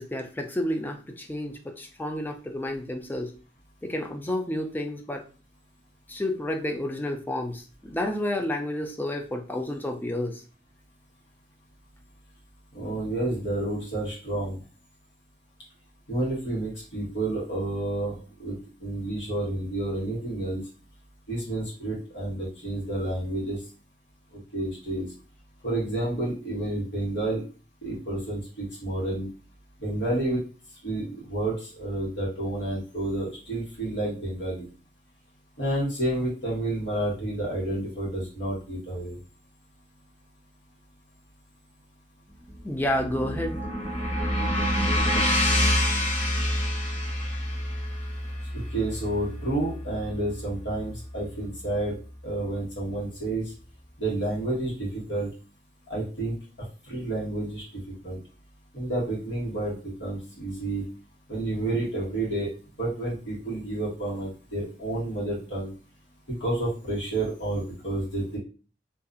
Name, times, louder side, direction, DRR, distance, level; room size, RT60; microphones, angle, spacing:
voice 1, 0.0-3.3 3.8-5.2 6.1-10.4 42.6-43.6, left 1 dB, 10° left, 4 dB, 0.3 m, -30 dB
voice 2, 12.7-14.6 16.1-20.6 21.3-23.6 24.5-25.1 25.6-27.4 27.8-29.3 29.8-30.4 30.8-34.7 35.6-39.1 48.5-53.5 54.0-55.3 55.9-56.3 56.9-58.2 58.7-60.8 61.3-62.5 62.8-65.7 66.4-68.4, right 1 dB, 90° left, -5 dB, 1.4 m, -30 dB
sound 1, 42.5-50.8, left 1 dB, 35° left, 1.1 m, -27 dB
2.6 x 2.4 x 2.5 m, 0.35 s
head